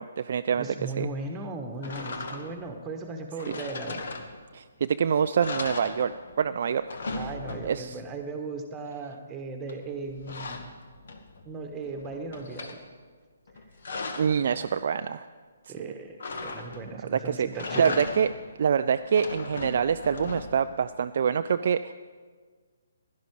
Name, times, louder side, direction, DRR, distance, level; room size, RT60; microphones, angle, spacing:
voice 1, 0.0-1.1 3.5-3.6 4.5-6.1 6.4-6.9 7.2-7.3 7.6-8.0 14.2-15.3 17.0-17.5 17.8-18.3 18.6-21.9, right 7 dB, 45° right, 10 dB, 0.3 m, -26 dB
voice 2, 0.5-4.1 7.2-10.7 11.4-12.8 15.7-18.0, right 3 dB, 15° right, 4 dB, 1.4 m, -37 dB
sound 1, 1.8-2.7 3.4-4.7 5.0-5.1 5.4-6.5 6.7-8.0 9.7-11.5 11.9-12.8 13.5-14.4 16.2-17.0 17.5-18.5 19.0-20.7, left 3 dB, 50° left, 1.3 m, -37 dB
16.5 x 11.5 x 4.9 m, 1.5 s
figure-of-eight pair, 135°, 0 cm